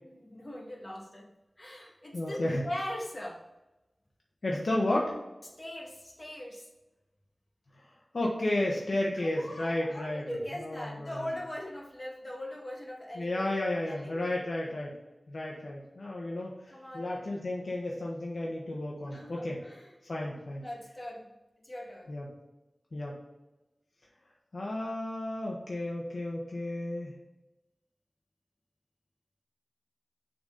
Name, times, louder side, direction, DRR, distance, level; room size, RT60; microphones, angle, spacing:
voice 1, 0.0-1.3 1.6-2.4 2.6-3.4 5.6-6.7 9.2-14.4 16.7-17.1 19.1-19.9 20.2-20.3 20.6-21.3 21.6-22.1, left 1 dB, 30° left, -2 dB, 1.9 m, -41 dB
voice 2, 2.1-2.6 4.4-5.2 7.8-7.9 8.1-10.2 10.6-11.1 13.2-15.0 15.3-19.6 20.0-20.6 22.1-22.3 22.9-23.2 24.5-27.1, left 1 dB, 75° left, -3 dB, 1.2 m, -32 dB
6.8 x 4.1 x 3.9 m, 1.0 s
wide cardioid pair, 75°, 0 cm